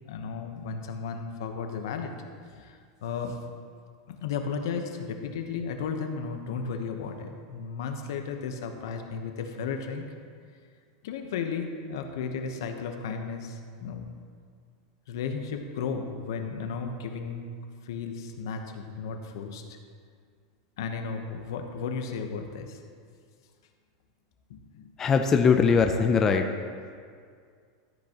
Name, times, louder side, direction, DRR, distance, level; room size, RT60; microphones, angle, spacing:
voice 1, 0.1-2.2 2.6-3.4 4.1-10.1 11.0-14.1 15.1-17.4 17.8-19.8 20.8-22.8 24.5-24.9, left 5 dB, 75° left, 5 dB, 1.0 m, -34 dB
voice 2, 25.0-26.4, left 5 dB, 20° left, 5 dB, 0.5 m, -21 dB
14.0 x 8.1 x 3.0 m, 2.1 s
supercardioid pair, 155°, 2 cm